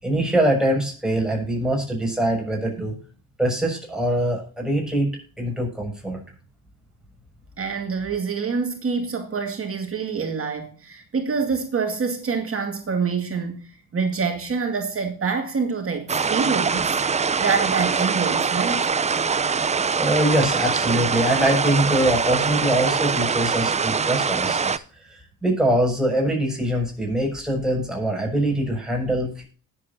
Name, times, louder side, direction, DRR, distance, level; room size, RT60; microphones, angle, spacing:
voice 1, 0.0-3.0 3.4-5.1 5.4-6.2 20.0-24.7 25.0-29.4, right 1 dB, ahead, 6.5 m, -23 dB
voice 2, 7.6-17.0 17.4-18.9, right 5 dB, 35° right, 2.1 m, -26 dB
sound 1, 16.1-24.8, right 5 dB, 20° right, 0.6 m, -23 dB
19.5 x 8.0 x 2.7 m
supercardioid pair, 70°, 38 cm